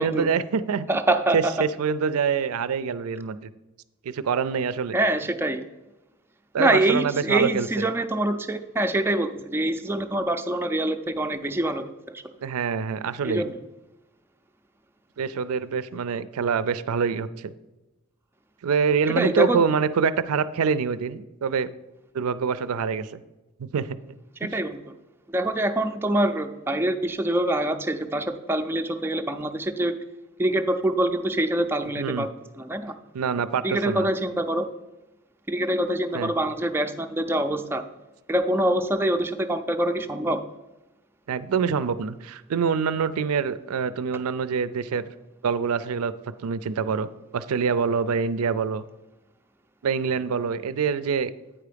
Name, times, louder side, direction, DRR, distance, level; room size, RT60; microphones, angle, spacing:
voice 1, 0.0-0.9 1.3-3.5 4.0-5.0 6.5-7.9 12.4-13.5 15.2-17.5 18.6-21.7 22.1-23.2 23.6-24.0 32.0-32.3 33.1-34.1 36.1-36.3 41.3-45.0 45.4-46.1 46.4-48.8 49.8-51.3, right 6 dB, 80° right, 15 dB, 0.4 m, -25 dB
voice 2, 0.9-1.5 4.9-5.6 6.6-12.2 13.2-13.5 19.2-19.6 24.4-24.8 25.3-29.9 30.4-32.3 32.6-32.9 33.6-34.7 35.5-37.8 38.3-40.5, right 1 dB, 10° right, 6 dB, 0.4 m, -25 dB
8.8 x 4.7 x 5.1 m, 1.0 s
head